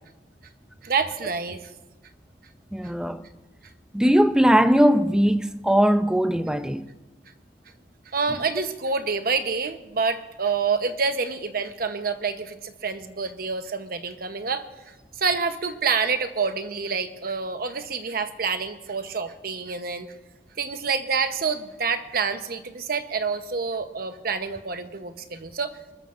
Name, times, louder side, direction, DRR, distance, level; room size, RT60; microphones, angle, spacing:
voice 1, 0.8-1.7 8.1-14.7 15.2-20.1 20.6-25.8, right 5 dB, 55° right, 1.0 m, -27 dB
voice 2, 2.7-3.2 3.9-6.9, equal, 5° right, 0.5 m, -20 dB
27.0 x 13.5 x 2.6 m
head